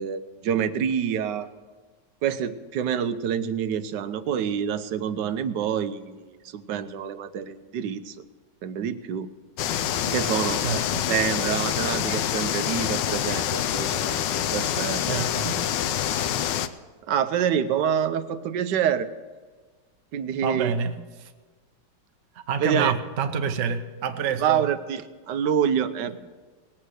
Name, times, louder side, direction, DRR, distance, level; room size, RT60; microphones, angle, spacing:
voice 1, 0.0-1.5 2.2-8.1 8.6-9.3 10.0-10.6 11.1-14.2 14.5-15.0 16.3-16.5 17.1-19.1 20.1-20.7 22.6-22.9 24.4-26.2, right 8 dB, 75° right, 12 dB, 1.3 m, -27 dB
sound 1, 9.6-16.7, left 10 dB, 75° left, 1.3 m, -26 dB
voice 2, 10.6-11.1 15.0-15.6 20.4-21.3 22.3-24.7 26.1-26.2, right 6 dB, 50° right, 7 dB, 1.0 m, -28 dB
19.0 x 8.8 x 6.4 m, 1.4 s
omnidirectional pair, 2.0 m